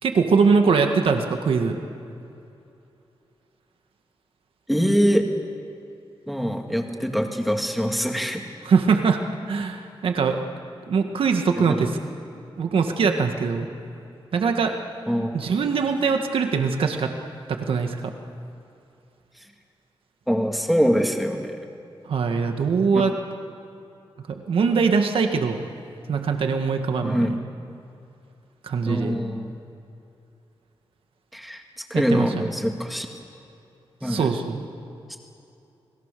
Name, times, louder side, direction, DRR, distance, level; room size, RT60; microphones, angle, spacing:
voice 1, 0.0-1.8 8.6-9.2 9.5-10.4 10.9-12.0 12.6-13.7 14.3-14.7 15.3-17.1 17.5-18.1 22.0-23.1 24.3-25.6 26.1-27.3 28.6-29.2 31.9-32.5 34.0-34.6, right 5 dB, 80° right, 5 dB, 1.9 m, -22 dB
voice 2, 4.7-5.3 6.3-8.5 11.6-11.8 15.1-15.3 20.3-21.6 22.9-23.0 27.0-27.3 28.8-29.5 31.3-33.1 34.0-34.3, equal, ahead, 3 dB, 2.1 m, -24 dB
29.5 x 21.5 x 6.9 m, 2.7 s
wide cardioid pair, 170°, 9 cm